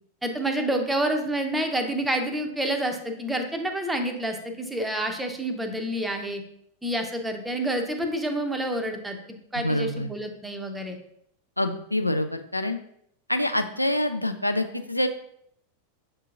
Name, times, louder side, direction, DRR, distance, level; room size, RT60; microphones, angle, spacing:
voice 1, 0.2-6.4 6.8-9.2 9.5-11.0, right 1 dB, 5° right, 5 dB, 0.6 m, -28 dB
voice 2, 9.6-10.1 11.6-12.8 13.3-15.1, left 1 dB, 85° left, 6 dB, 0.3 m, -26 dB
6.7 x 2.8 x 2.4 m, 0.70 s
figure-of-eight pair, 90°, 0 cm